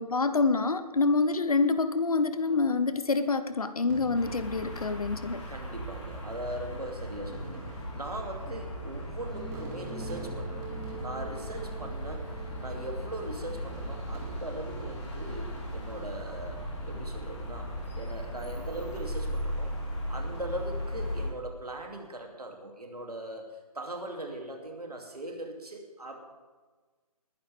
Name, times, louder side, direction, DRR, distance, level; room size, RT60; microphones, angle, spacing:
voice 1, 0.0-5.4, left 4 dB, 65° left, 12 dB, 1.0 m, -26 dB
Fireworks, 3.9-5.5 6.4-6.5 7.1-12.4 13.5-15.3 15.8-16.3, right 2 dB, 25° right, 2.8 m, -48 dB
sound 1, 4.1-21.3, equal, 45° left, 4.0 m, -37 dB
voice 2, 5.5-10.7 11.0-17.7 17.9-19.7 20.1-26.3, right 1 dB, 75° right, 2 dB, 2.7 m, -40 dB
sound 2, 9.3-14.4, right 5 dB, ahead, 1.3 m, -45 dB
20.5 x 11.0 x 3.5 m, 1.4 s
figure-of-eight pair, 145°, 20 cm